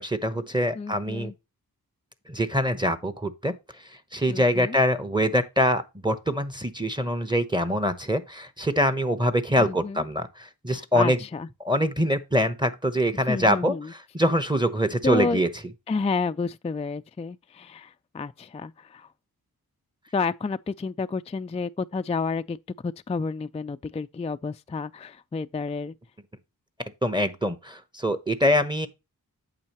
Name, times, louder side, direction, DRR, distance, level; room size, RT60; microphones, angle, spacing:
voice 1, 0.0-1.3 2.3-11.2 11.6-15.5 27.0-28.9, equal, 10° right, 0.9 m, -24 dB
voice 2, 0.7-1.3 4.3-4.8 9.6-10.0 10.7-11.5 13.3-13.9 15.0-15.4 15.9-19.1 20.1-22.6 22.8-25.9, left 4 dB, 20° left, 0.3 m, -30 dB
8.7 x 6.3 x 3.0 m
wide cardioid pair, 60°, 38 cm